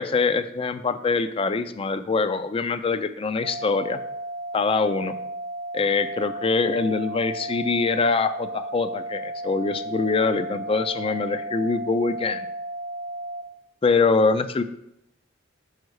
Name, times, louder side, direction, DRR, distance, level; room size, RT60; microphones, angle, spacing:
voice 1, 0.0-4.0 4.5-5.2 5.7-12.5 13.8-14.6, left 4 dB, 30° left, 11 dB, 0.4 m, -24 dB
sound 1, 3.4-13.4, right 1 dB, 40° right, 0.4 m, -34 dB
6.4 x 5.5 x 4.7 m, 0.80 s
head